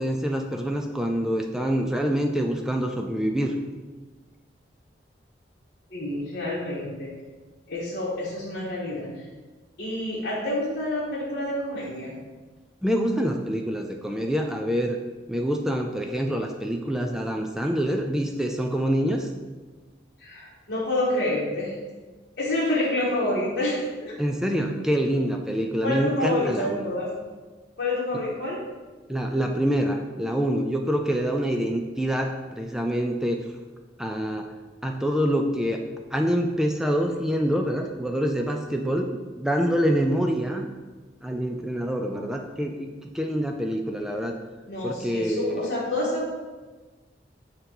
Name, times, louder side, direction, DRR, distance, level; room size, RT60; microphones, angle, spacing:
voice 1, 0.0-3.5 12.8-15.0 15.3-19.3 24.2-26.9 29.1-33.4 34.0-34.5 34.8-35.8 36.1-40.7 41.2-42.9 43.1-44.4 44.8-45.7, equal, 5° right, 3 dB, 0.3 m, -26 dB
voice 2, 5.9-7.1 7.7-9.1 9.8-12.1 20.2-21.7 22.4-24.2 25.8-27.1 27.8-28.6 44.7-46.3, left 1 dB, 55° left, -9 dB, 1.4 m, -28 dB
7.1 x 2.9 x 4.8 m, 1.3 s
head